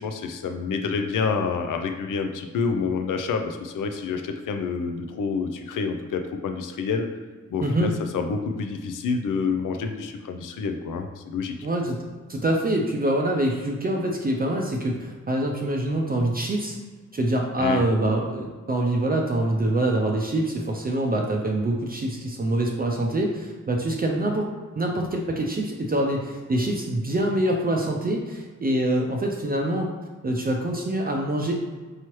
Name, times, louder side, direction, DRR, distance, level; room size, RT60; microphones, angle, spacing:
voice 1, 0.0-7.1 7.5-11.6 17.6-17.8, left 5 dB, 90° left, 6 dB, 0.5 m, -28 dB
voice 2, 7.6-7.9 11.6-12.0 12.3-16.8 17.1-24.5 24.8-29.9 30.2-31.5, right 1 dB, 30° right, 0 dB, 0.4 m, -25 dB
4.7 x 3.0 x 3.0 m, 1.4 s
wide cardioid pair, 90°, 31 cm